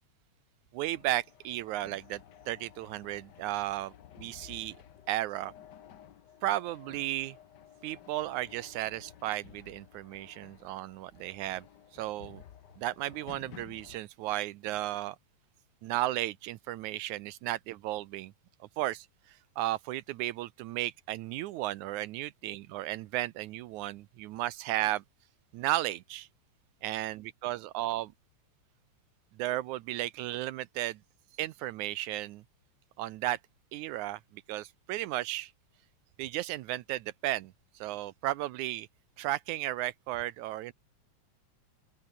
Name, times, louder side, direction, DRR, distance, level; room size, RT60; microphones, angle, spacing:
voice 1, 0.7-4.8 5.1-5.5 6.4-7.4 7.8-11.7 11.9-12.4 12.8-15.2 15.8-18.3 18.8-25.0 25.5-26.3 26.8-28.1 29.4-31.0 31.4-32.4 33.0-33.4 33.7-35.5 36.2-38.9 39.2-40.7, right 15 dB, 80° right, 2.1 m, -34 dB
sound 1, 0.8-14.0, left 10 dB, 75° left, 0.9 m, -54 dB
open air
omnidirectional pair, 3.4 m